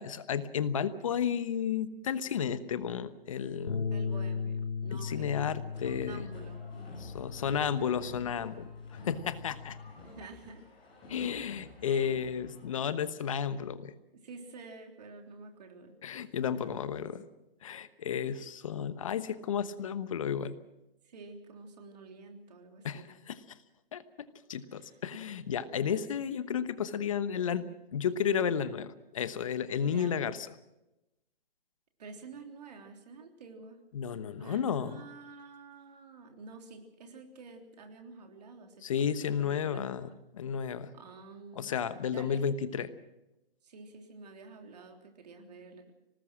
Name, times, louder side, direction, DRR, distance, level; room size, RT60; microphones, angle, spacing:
voice 1, 0.0-3.9 4.9-6.3 7.0-8.7 9.1-9.8 11.1-13.9 16.0-17.2 17.6-20.6 22.8-23.4 23.9-24.0 24.5-30.5 33.9-35.0 38.8-40.9 41.6-42.9, left 7 dB, 35° left, 14 dB, 1.1 m, -32 dB
Bass guitar, 3.7-9.9, left 5 dB, 60° left, 2.4 m, -38 dB
voice 2, 3.9-7.0 10.0-10.6 11.8-12.2 14.1-16.0 21.0-23.1 24.7-25.0 29.8-30.2 32.0-33.8 34.4-39.8 40.9-41.7 42.1-42.4 43.6-45.9, right 4 dB, 45° right, 4 dB, 3.4 m, -49 dB
sound 1, 5.7-12.9, left 2 dB, 15° left, 6.2 m, -52 dB
24.5 x 19.0 x 6.3 m, 0.95 s
hypercardioid pair, 155°, 30 cm